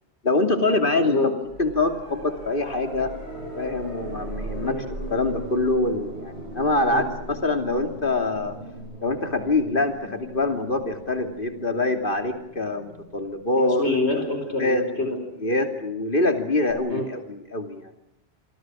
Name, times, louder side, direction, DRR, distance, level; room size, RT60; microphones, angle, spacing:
voice 1, 0.2-1.3 1.6-3.1 3.6-4.8 5.1-8.6 9.0-13.8 14.6-14.8 15.4-17.9, left 2 dB, 50° left, 6 dB, 3.0 m, -24 dB
sound 1, 1.5-14.3 16.7-16.8, right 1 dB, 80° right, 8.5 m, -39 dB
voice 2, 13.5-15.2 16.9-17.0, left 3 dB, 80° left, 5 dB, 5.0 m, -26 dB
27.5 x 24.5 x 6.3 m, 0.85 s
omnidirectional pair, 1.1 m